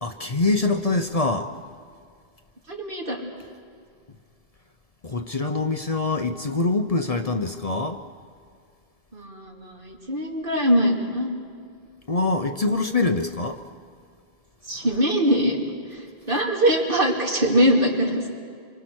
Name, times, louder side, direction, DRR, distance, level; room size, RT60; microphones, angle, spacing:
voice 1, 0.0-1.5 5.0-8.0 12.1-13.6 14.7-14.9, left 3 dB, 40° left, 6 dB, 0.9 m, -24 dB
voice 2, 2.7-3.3 9.1-11.3 14.7-15.6 16.3-18.2, equal, 60° right, -1 dB, 3.1 m, -22 dB
28.0 x 25.0 x 6.3 m, 2.1 s
omnidirectional pair, 1.0 m